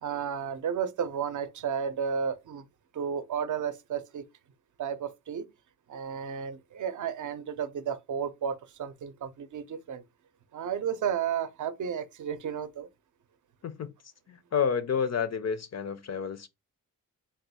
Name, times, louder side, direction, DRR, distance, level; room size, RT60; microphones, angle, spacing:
voice 1, 0.0-2.6 2.9-4.2 4.8-5.4 5.9-10.0 10.5-12.9, right 7 dB, 60° right, 0.6 m, -33 dB
voice 2, 14.3-16.5, left 7 dB, 50° left, 0.5 m, -30 dB
3.6 x 2.2 x 4.1 m
cardioid pair, 80°, 35 cm